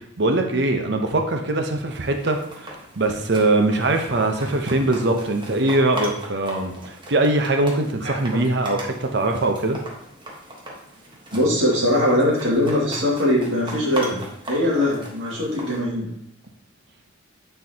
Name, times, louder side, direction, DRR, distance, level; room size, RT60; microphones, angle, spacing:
voice 1, 0.2-9.8, right 2 dB, 60° right, 5 dB, 0.9 m, -22 dB
sound 1, 1.9-15.8, right 1 dB, 25° right, 1.4 m, -38 dB
voice 2, 11.3-16.1, left 1 dB, 80° right, -4 dB, 2.3 m, -21 dB
9.7 x 4.6 x 2.9 m, 0.75 s
head